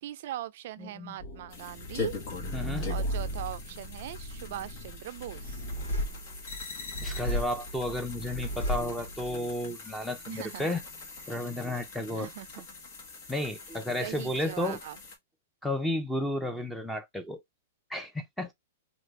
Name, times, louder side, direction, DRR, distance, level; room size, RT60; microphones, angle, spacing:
voice 1, 0.0-2.1 2.9-5.6 10.2-10.8 11.3-11.5 12.1-12.7 14.0-15.0, right 13 dB, 60° right, 0.4 m, -40 dB
voice 2, 0.8-1.1 2.5-2.9 7.0-10.8 11.3-12.3 13.3-14.8 15.6-17.4 17.9-18.5, left 1 dB, ahead, 0.7 m, -32 dB
sound 1, 1.2-9.5, equal, 75° left, 1.6 m, -36 dB
sound 2, 1.5-15.2, left 4 dB, 55° left, 1.4 m, -44 dB
2.9 x 2.5 x 3.3 m
hypercardioid pair, 140°, 0 cm